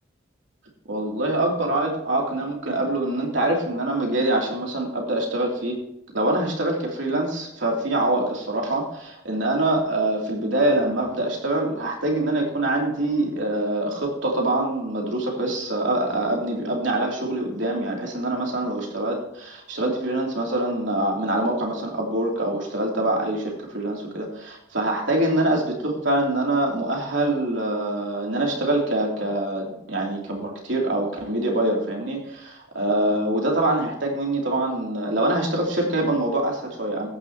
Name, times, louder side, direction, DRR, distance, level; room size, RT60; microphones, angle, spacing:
voice 1, 0.9-5.8 6.1-37.1, right 1 dB, 70° right, -1 dB, 3.0 m, -24 dB
14.0 x 9.8 x 2.9 m, 0.76 s
head